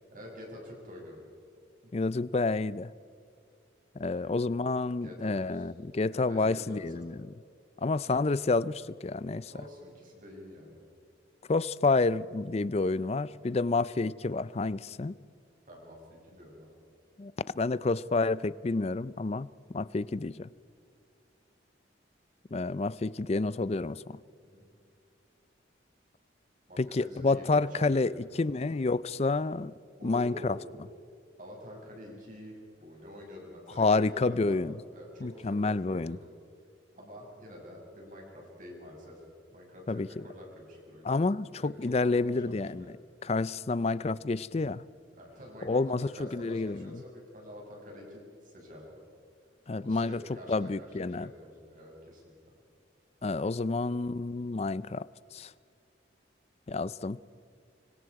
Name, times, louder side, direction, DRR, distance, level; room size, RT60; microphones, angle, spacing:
voice 1, 0.1-1.3 1.8-1.9 4.1-4.3 5.0-5.7 6.1-7.0 9.5-10.8 15.7-16.8 24.4-24.6 26.7-28.0 28.4-28.8 30.0-30.8 31.4-34.6 34.9-36.3 36.9-39.2 39.5-41.1 41.6-42.9 45.2-49.0 49.8-52.3, left 1 dB, 45° right, 6.6 m, -47 dB
voice 2, 1.9-2.9 4.0-7.2 7.8-9.5 11.5-15.1 17.2-19.5 19.7-20.5 22.5-24.2 26.8-29.7 30.0-30.6 33.8-34.7 35.2-36.2 39.9-40.1 41.1-42.9 43.2-44.8 45.6-47.0 49.7-50.2 50.5-51.3 53.2-55.5 56.7-57.2, left 3 dB, 35° left, 0.4 m, -29 dB
25.5 x 25.0 x 4.8 m
head